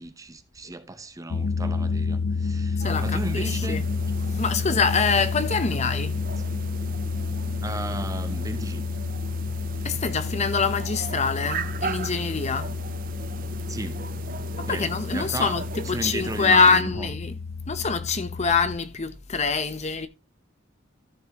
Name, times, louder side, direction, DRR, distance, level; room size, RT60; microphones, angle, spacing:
voice 1, 0.0-3.8 5.7-5.9 6.4-6.5 7.6-8.9 13.7-14.1 14.7-15.6 15.8-17.1, right 2 dB, 15° right, 0.8 m, -35 dB
sound 1, 1.3-18.8, left 4 dB, 80° left, 0.5 m, -30 dB
voice 2, 2.8-3.8 4.4-6.1 9.8-12.7 14.6-15.6 15.9-17.4 17.7-20.1, left 5 dB, 35° left, 0.8 m, -24 dB
sound 2, 2.8-16.8, right 5 dB, 45° right, 0.7 m, -38 dB
14.0 x 6.0 x 2.9 m
head